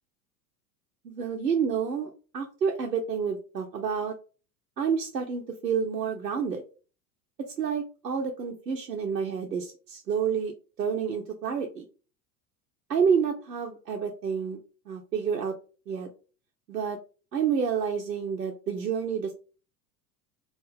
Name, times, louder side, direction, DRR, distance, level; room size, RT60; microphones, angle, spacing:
voice 1, 1.0-4.1 4.8-6.6 7.6-10.5 10.8-11.8 12.9-14.6 14.9-15.5 15.9-16.1 16.7-17.0 17.3-19.3, right 6 dB, 90° right, 2 dB, 0.6 m, -29 dB
2.8 x 2.4 x 3.8 m, 0.36 s
figure-of-eight pair, 80°, 49 cm